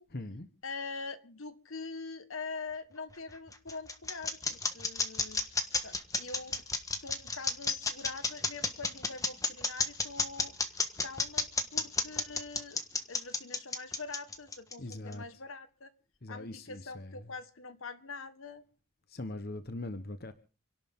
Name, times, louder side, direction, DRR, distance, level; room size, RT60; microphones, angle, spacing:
voice 1, 0.1-0.5 14.8-15.2 16.2-17.3 19.1-20.3, left 2 dB, 45° left, 1.0 m, -41 dB
voice 2, 0.6-5.4 5.8-6.6 7.0-10.7 11.0-15.9 16.3-18.6, left 4 dB, 70° left, 1.5 m, -44 dB
sound 1, 3.1-15.1, left 4 dB, 15° left, 1.3 m, -31 dB
29.0 x 11.5 x 3.7 m
head